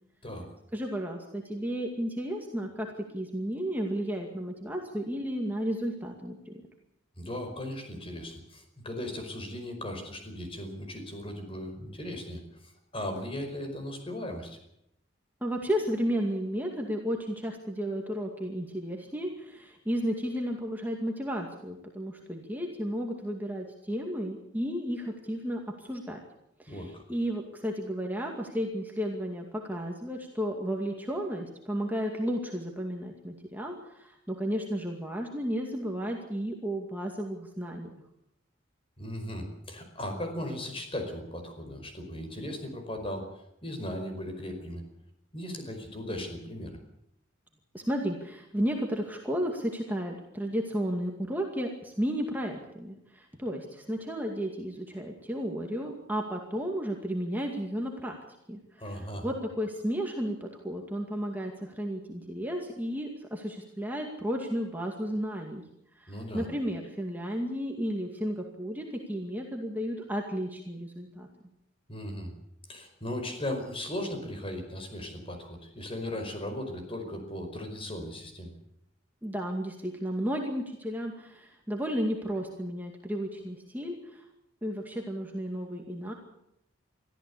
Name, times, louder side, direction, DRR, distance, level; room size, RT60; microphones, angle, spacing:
voice 1, 0.7-6.6 15.4-26.2 26.6-37.9 47.7-58.2 58.5-58.6 58.9-65.6 66.0-71.3 79.2-84.3 84.6-86.1, equal, 10° right, 1 dB, 2.3 m, -33 dB
voice 2, 7.2-12.4 12.9-14.6 26.7-27.0 39.0-43.3 43.6-44.8 45.3-46.7 58.8-59.3 66.1-66.5 71.9-72.3 72.7-78.5, left 1 dB, 30° left, 5 dB, 5.1 m, -37 dB
23.5 x 14.5 x 8.5 m, 0.79 s
head